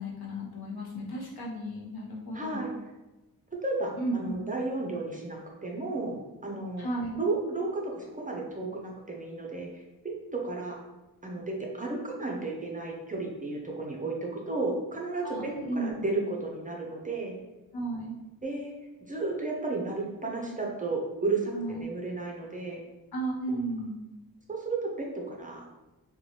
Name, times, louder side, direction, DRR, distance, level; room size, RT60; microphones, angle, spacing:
voice 1, 0.0-2.7 4.0-4.4 6.8-7.2 15.2-16.2 17.7-18.1 21.5-21.9 23.1-24.0, right 1 dB, 75° left, -3 dB, 0.8 m, -34 dB
voice 2, 2.3-2.7 3.6-6.2 6.4-6.9 7.2-10.8 11.2-17.4 18.4-18.7 19.0-22.8 24.5-25.6, right 3 dB, 20° right, -1 dB, 0.4 m, -33 dB
2.9 x 2.3 x 2.8 m, 1.1 s
wide cardioid pair, 115°, 38 cm